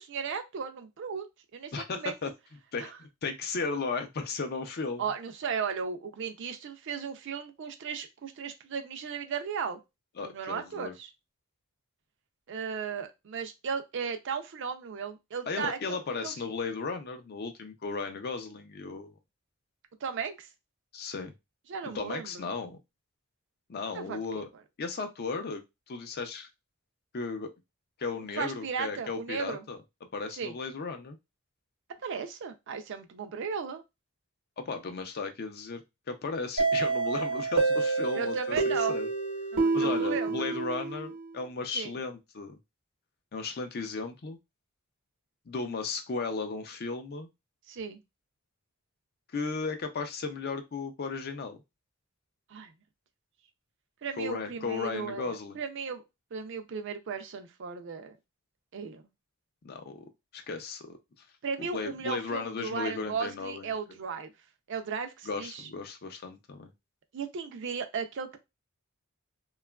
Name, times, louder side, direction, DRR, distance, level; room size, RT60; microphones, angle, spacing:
voice 1, 0.0-2.1 2.8-3.0 5.0-9.8 10.2-11.1 12.5-16.3 20.0-20.5 21.7-22.5 23.9-24.5 28.4-29.6 30.3-30.5 32.0-33.8 38.1-39.0 39.5-40.5 41.7-42.0 47.7-48.0 52.5-52.7 54.0-56.0 56.3-58.2 58.7-59.0 61.4-64.3 64.7-65.7 67.1-68.4, right 6 dB, 55° right, 7 dB, 0.4 m, -36 dB
voice 2, 1.7-2.3 2.7-5.0 10.2-10.9 15.5-19.1 20.9-21.3 21.9-22.8 23.7-24.5 24.8-26.5 27.1-27.5 28.0-29.8 30.1-31.2 34.6-35.8 36.1-39.1 39.7-42.6 43.3-44.4 45.5-47.3 49.3-51.6 54.2-55.6 59.6-60.0 60.3-61.0 61.6-63.7 65.2-66.7, left 4 dB, 45° left, 7 dB, 0.4 m, -35 dB
sound 1, 36.6-41.3, right 3 dB, 85° right, 0.9 m, -28 dB
2.8 x 2.3 x 2.2 m, 0.22 s
head